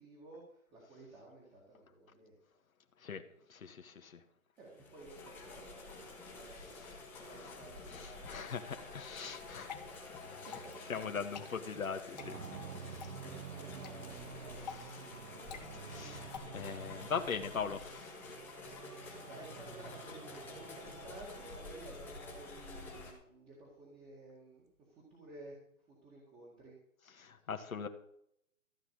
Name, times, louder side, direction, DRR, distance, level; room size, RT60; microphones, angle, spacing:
voice 1, 0.0-2.4 4.5-6.9 7.2-11.3 12.9-15.3 19.3-26.8 27.3-27.4, right 2 dB, 10° right, -3 dB, 2.0 m, -55 dB
voice 2, 3.5-4.2 7.2-7.6 7.9-9.7 10.3-10.5 10.9-12.4 14.7-14.8 15.8-18.4 27.2-27.9, left 6 dB, 75° left, 6 dB, 1.8 m, -41 dB
sound 1, 4.7-23.1, left 3 dB, 5° left, 1.5 m, -49 dB
Water / Drip, 9.4-16.4, left 7 dB, 30° left, 1.4 m, -51 dB
sound 2, 12.2-22.1, right 6 dB, 85° right, 1.9 m, -50 dB
14.5 x 5.8 x 8.5 m, 0.71 s
hypercardioid pair, 165°, 42 cm